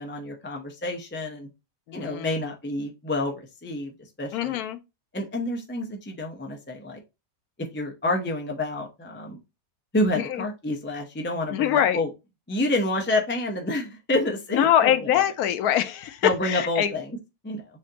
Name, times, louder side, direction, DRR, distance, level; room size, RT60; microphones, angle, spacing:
voice 1, 0.0-1.5 1.9-3.9 4.2-4.6 5.1-7.0 7.7-9.4 9.9-12.1 12.5-14.9 16.2-17.1 17.4-17.6, left 2 dB, 15° left, 0.4 m, -28 dB
voice 2, 1.9-2.5 4.3-4.8 10.1-10.5 11.5-12.0 14.5-16.9, left 11 dB, 90° left, 1.1 m, -24 dB
7.1 x 2.5 x 2.8 m
omnidirectional pair, 1.5 m